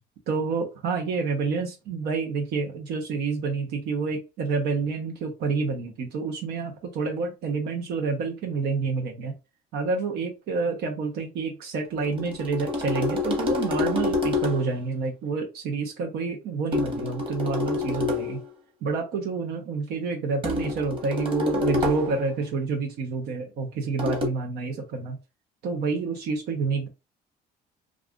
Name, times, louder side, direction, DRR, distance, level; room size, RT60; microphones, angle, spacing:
voice 1, 0.3-9.3 9.7-18.4 18.8-25.2 25.6-26.9, right 4 dB, 75° right, 2 dB, 0.8 m, -28 dB
high conga wet, 12.0-14.8 16.7-18.4 20.4-22.2 24.0-24.3, left 3 dB, 30° right, 1.2 m, -27 dB
2.5 x 2.4 x 3.5 m, 0.27 s
cardioid pair, 110°, 17 cm